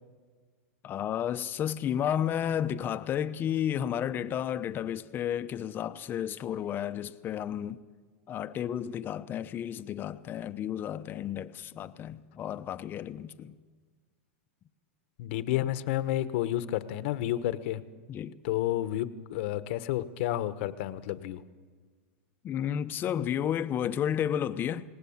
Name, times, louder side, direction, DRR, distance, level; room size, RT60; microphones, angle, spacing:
voice 1, 0.8-7.8 8.3-13.6 18.1-18.4 22.4-24.8, left 9 dB, 30° left, 0.9 m, -32 dB
voice 2, 15.2-17.8 18.4-21.4, left 13 dB, 60° left, 1.2 m, -30 dB
28.0 x 18.5 x 7.3 m
supercardioid pair, 135°, 7 cm